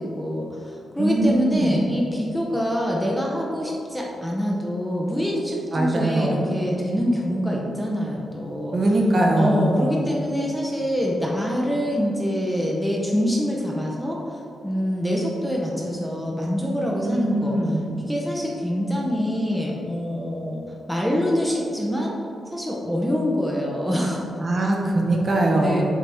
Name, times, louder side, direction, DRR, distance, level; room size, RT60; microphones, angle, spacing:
voice 1, 0.0-8.8 9.3-20.6 20.9-22.1 22.5-24.2 25.6-25.8, equal, ahead, -3 dB, 0.6 m, -25 dB
voice 2, 1.0-1.8 5.7-6.5 8.7-10.0 17.0-17.8 24.4-25.8, right 1 dB, 35° right, -1 dB, 0.8 m, -21 dB
7.5 x 4.0 x 3.4 m, 2.7 s
wide cardioid pair, 165°, 0 cm